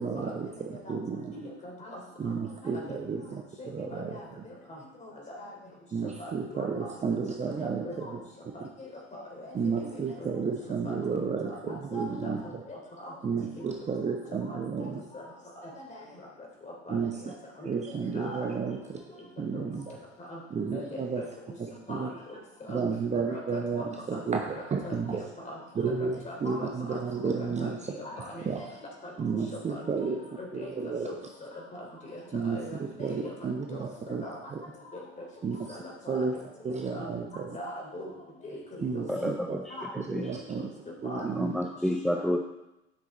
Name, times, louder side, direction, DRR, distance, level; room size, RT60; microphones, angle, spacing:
voice 1, 0.0-1.4 2.2-4.4 5.9-8.2 8.6-8.7 9.5-12.6 13.2-15.0 16.9-17.3 17.6-19.0 19.4-19.9 20.5-21.2 21.6-22.1 22.7-25.2 25.7-27.9 28.4-28.6 29.2-30.2 30.5-31.1 32.3-34.2 34.5-34.6 35.4-35.8 36.1-36.4 36.6-37.6 38.8-39.6 39.9-40.7 41.0-41.5, right 5 dB, 20° right, 2 dB, 0.9 m, -32 dB
voice 2, 1.3-2.0 2.3-2.4 2.7-3.0 3.6-4.2 4.7-5.5 6.2-6.7 7.4-8.1 8.8-9.5 9.8-10.0 10.8-10.9 11.7-13.1 14.5-14.6 15.1-15.2 16.9-17.0 17.6-17.7 18.1-18.4 19.5-19.6 20.2-20.4 20.7-21.2 21.9-22.4 22.7-22.8 23.1-23.6 24.1-24.2 24.5-25.0 25.4-25.6 26.2-27.0 27.3-27.7 28.0-28.4 29.0-29.1 29.7-31.5 32.1-32.2 32.5-32.8 33.1-33.3 33.7-33.8 34.2-34.4 35.7-36.2 36.9-37.1 37.5-38.1 38.4-39.3 39.7-39.9 40.2-40.3 41.0-41.3 42.1-42.3, left 1 dB, 20° left, -2 dB, 3.2 m, -41 dB
voice 3, 39.1-40.3 41.2-42.4, equal, ahead, 2 dB, 0.6 m, -30 dB
10.5 x 6.1 x 4.3 m, 0.93 s
figure-of-eight pair, 75°, 33 cm